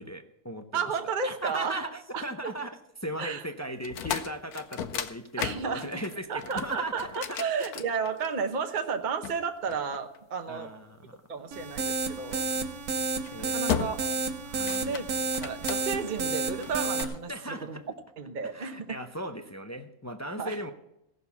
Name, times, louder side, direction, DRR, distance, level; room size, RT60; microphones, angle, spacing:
voice 1, 0.0-0.9 1.2-7.4 10.5-11.2 13.3-13.6 14.4-15.2 17.3-17.8 18.4-20.7, right 1 dB, 25° left, 6 dB, 0.3 m, -38 dB
voice 2, 0.7-1.8 2.1-2.5 3.2-3.4 5.4-5.9 6.3-10.7 11.3-12.5 13.5-14.0 14.6-15.1 15.4-17.8 18.2-19.0 20.4-20.6, right 5 dB, 35° right, 6 dB, 1.0 m, -32 dB
sound 1, 3.8-8.5 9.2-10.5 12.3-12.6 13.1-13.3 13.7-14.2 14.5-16.1 16.6-17.2, left 8 dB, 75° left, 1.3 m, -35 dB
sound 2, 11.5-17.0, right 3 dB, 70° right, 1.4 m, -31 dB
17.0 x 6.6 x 7.1 m, 0.85 s
omnidirectional pair, 1.7 m